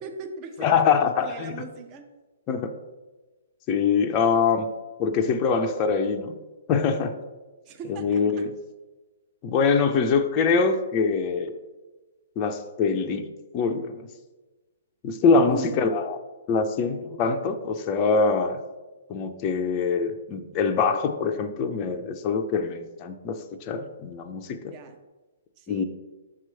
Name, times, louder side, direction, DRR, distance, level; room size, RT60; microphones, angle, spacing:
voice 1, 0.0-2.1 7.7-8.4 15.5-15.7 24.6-25.0 25.6-25.8, right 4 dB, 30° right, 5 dB, 0.7 m, -39 dB
voice 2, 0.6-1.6 2.5-2.7 3.7-4.7 5.0-6.4 6.7-7.1 7.9-8.5 9.4-11.5 12.4-13.2 13.5-14.0 15.0-16.2 16.5-18.6 19.1-24.7 25.7-25.8, left 5 dB, 30° left, 5 dB, 0.5 m, -24 dB
6.0 x 3.0 x 5.5 m, 1.2 s
figure-of-eight pair, 125°, 0 cm